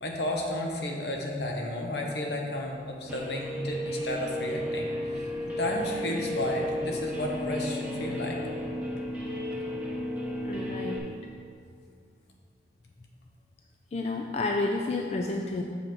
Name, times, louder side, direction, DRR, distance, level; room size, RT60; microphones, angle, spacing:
voice 1, 0.0-4.9 5.1-5.3 5.6-8.4, left 1 dB, 70° left, 1 dB, 1.0 m, -32 dB
Guitar, 3.1-11.0, equal, 10° right, 0.8 m, -33 dB
voice 2, 10.4-11.0 13.9-15.6, left 2 dB, 35° left, 1 dB, 0.3 m, -30 dB
6.7 x 5.5 x 4.5 m, 2.2 s
head